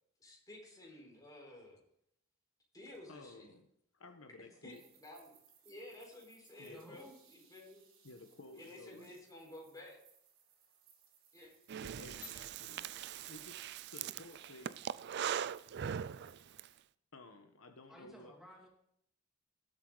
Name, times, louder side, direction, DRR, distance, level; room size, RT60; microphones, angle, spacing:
voice 1, 0.2-1.8 2.7-3.5 4.6-5.3 5.6-7.8 8.5-10.0 11.3-11.5 12.2-12.4, left 2 dB, 20° left, -2 dB, 4.6 m, -53 dB
voice 2, 3.1-3.7 3.9-4.8 6.6-7.0 8.0-9.2 11.8-14.8 17.1-18.3, left 2 dB, 75° left, 6 dB, 1.2 m, -55 dB
sound 1, 4.7-16.8, right 7 dB, 70° right, 3.8 m, -68 dB
voice 3, 6.7-7.2 17.9-18.7, equal, ahead, -2 dB, 2.5 m, -55 dB
Breathing, 11.7-16.7, right 8 dB, 55° right, 0.4 m, -41 dB
19.0 x 8.2 x 4.0 m, 0.72 s
head